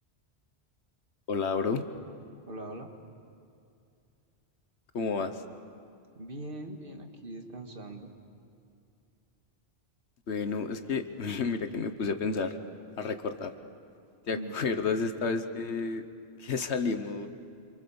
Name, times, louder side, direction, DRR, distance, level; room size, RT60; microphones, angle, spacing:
voice 1, 1.3-1.8 4.9-5.4 10.3-12.5 13.0-13.5 14.3-16.0 16.4-17.3, left 4 dB, 90° left, 9 dB, 1.5 m, -31 dB
voice 2, 2.5-2.9 6.2-8.1 14.3-14.6, right 1 dB, 55° right, 4 dB, 2.0 m, -41 dB
27.0 x 24.5 x 7.0 m, 2.5 s
omnidirectional pair, 1.1 m